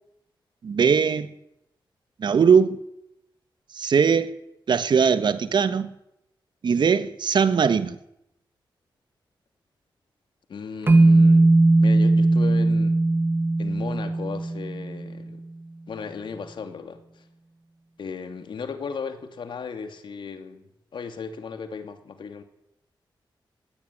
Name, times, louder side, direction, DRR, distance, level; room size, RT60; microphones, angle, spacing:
voice 1, 0.6-1.3 2.2-2.8 3.7-4.3 4.7-5.9 6.6-8.0, right 6 dB, 65° right, 1.4 m, -20 dB
voice 2, 10.5-13.0 13.6-15.4 15.9-17.2 18.0-22.4, left 5 dB, 70° left, 2.8 m, -36 dB
sound 1, 10.9-15.2, right 2 dB, 25° right, 0.8 m, -18 dB
18.5 x 16.5 x 10.0 m
wide cardioid pair, 145°, 8 cm